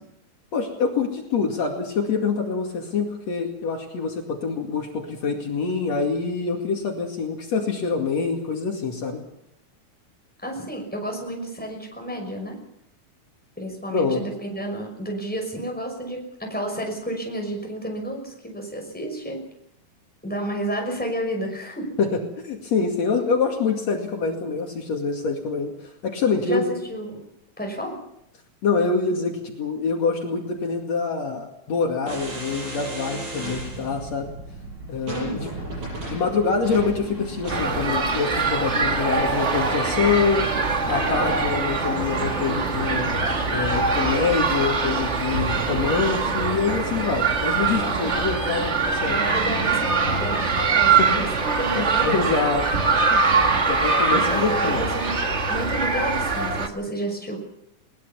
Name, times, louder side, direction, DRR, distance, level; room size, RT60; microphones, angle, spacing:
voice 1, 0.5-9.2 13.9-14.2 22.0-22.1 22.4-26.7 28.6-34.3 34.9-35.5 36.1-40.5 40.9-43.1 43.5-49.2 51.0-51.3 51.8-52.7 53.1-53.2 53.7-54.8, left 5 dB, 65° left, 2 dB, 3.4 m, -25 dB
voice 2, 10.4-12.6 13.6-19.4 20.2-21.9 26.4-27.2 27.6-28.0 35.1-35.6 48.0-48.1 49.1-52.1 54.1-55.1 55.5-57.4, right 1 dB, 5° left, 1 dB, 5.8 m, -31 dB
sound 1, 32.1-51.8, right 1 dB, 75° right, 9.0 m, -36 dB
sound 2, 37.5-56.7, right 4 dB, 35° right, 1.3 m, -23 dB
21.5 x 20.0 x 7.0 m, 0.79 s
omnidirectional pair, 3.4 m